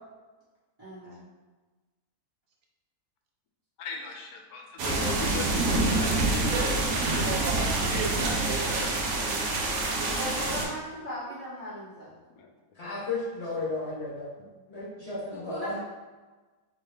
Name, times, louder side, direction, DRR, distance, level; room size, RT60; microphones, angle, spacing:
voice 1, 0.8-1.3 10.1-12.1 15.4-15.8, equal, 20° right, -14 dB, 1.4 m, -38 dB
voice 2, 3.8-7.5 12.4-12.5, left 4 dB, 70° left, 2 dB, 1.0 m, -38 dB
sound 1, 4.8-10.7, right 2 dB, 65° right, 0.8 m, -27 dB
voice 3, 7.1-9.2, right 3 dB, 85° right, 0 dB, 1.2 m, -35 dB
voice 4, 12.7-15.8, left 3 dB, 50° left, -8 dB, 1.1 m, -34 dB
3.1 x 2.8 x 3.3 m, 1.2 s
omnidirectional pair, 1.7 m